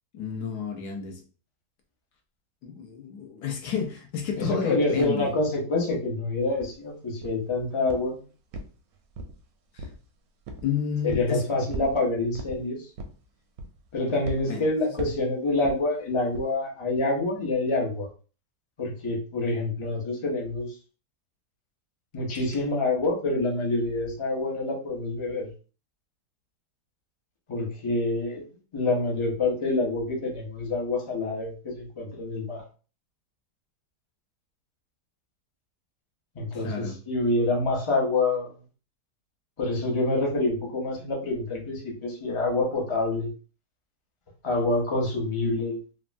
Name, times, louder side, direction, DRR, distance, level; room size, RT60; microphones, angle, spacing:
voice 1, 0.1-1.2 2.6-5.3 9.7-9.9 10.6-11.5 14.5-14.6 15.0-15.1 36.5-37.0, left 7 dB, 70° left, 2 dB, 1.2 m, -31 dB
voice 2, 4.4-8.2 11.0-12.9 13.9-18.1 18.8-20.7 22.1-25.5 27.5-28.4 28.7-32.6 36.3-38.5 39.6-43.3 44.4-45.8, left 2 dB, 50° left, -2 dB, 0.3 m, -27 dB
sound 1, 6.6-6.7 7.2-7.5 7.9-8.2 8.5-9.4 9.8-10.1 10.5-10.7 11.1-11.3 11.7-12.0 12.3-12.6 13.0-13.2 13.6-13.9 14.3-14.5 15.0-15.2 15.6-15.8 16.3-16.5, right 1 dB, 70° right, 0.9 m, -37 dB
3.4 x 2.1 x 2.5 m, 0.36 s
omnidirectional pair, 1.8 m